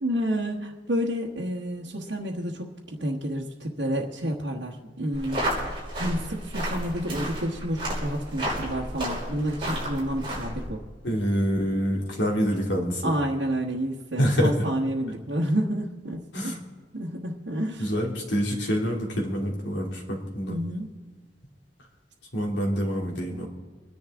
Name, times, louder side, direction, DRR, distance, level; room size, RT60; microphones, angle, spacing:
voice 1, 0.0-10.8 13.0-16.5 16.9-17.9 20.5-20.9, equal, 85° right, -3 dB, 1.3 m, -30 dB
sound 1, 5.1-10.7, equal, 30° right, 5.2 m, -32 dB
voice 2, 11.0-13.1 14.2-14.7 16.3-16.6 17.8-20.6 22.3-23.5, equal, 80° left, 0 dB, 2.8 m, -26 dB
26.0 x 10.5 x 3.6 m, 1.4 s
head